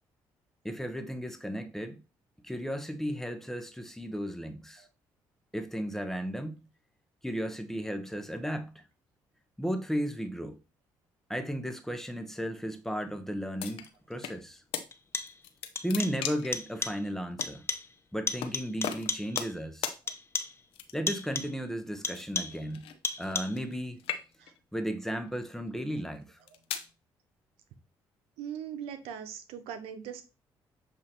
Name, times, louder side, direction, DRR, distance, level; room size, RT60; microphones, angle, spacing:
voice 1, 0.6-2.0 2.4-4.9 5.5-6.7 7.2-8.8 9.6-10.6 11.3-14.6 15.8-17.7 18.1-19.9 20.9-22.9 23.2-24.0 24.7-26.4, equal, 5° left, 1.0 m, -34 dB
sound 1, 13.6-14.4 14.7-14.9 15.3-16.6 17.4-17.5 18.4-18.5 18.8-19.6 19.8-20.0 20.7-21.2 22.1-23.7 24.0-24.6 25.3-25.5 26.2-26.9, left 9 dB, 80° left, 0.8 m, -37 dB
sound 2, 13.9-14.0 14.9-15.5 15.8-16.3 16.5-17.1 17.4-18.0 18.3-19.6 20.1-20.7 21.1-21.6 22.0-22.7 23.0-23.7, left 4 dB, 25° left, 0.8 m, -35 dB
voice 2, 28.4-30.2, right 8 dB, 90° right, 0.8 m, -40 dB
7.5 x 2.8 x 4.4 m
supercardioid pair, 75°, 10 cm